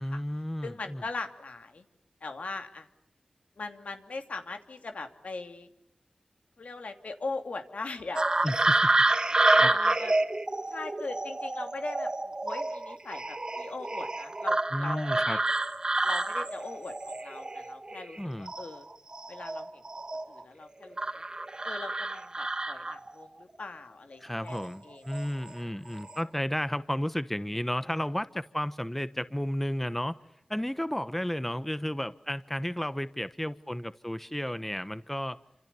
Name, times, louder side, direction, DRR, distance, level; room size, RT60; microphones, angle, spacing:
voice 1, 0.0-1.0 8.4-8.9 9.3-9.7 14.7-15.4 18.2-18.5 24.2-30.2 30.5-35.4, equal, 10° left, 13 dB, 1.0 m, -33 dB
voice 2, 0.6-1.8 2.2-2.9 3.6-5.7 6.6-8.5 9.5-10.1 10.7-15.4 16.0-16.9 17.2-18.8 19.3-19.8 20.3-21.2 21.6-24.6 24.8-25.3, left 3 dB, 80° left, 6 dB, 2.8 m, -40 dB
sound 1, 8.2-18.2 18.5-20.4 21.0-23.2 24.4-24.7 25.1-25.6 25.9-26.2, right 2 dB, 35° right, 1.6 m, -28 dB
29.0 x 26.5 x 7.0 m, 0.77 s
wide cardioid pair, 80°, 2 cm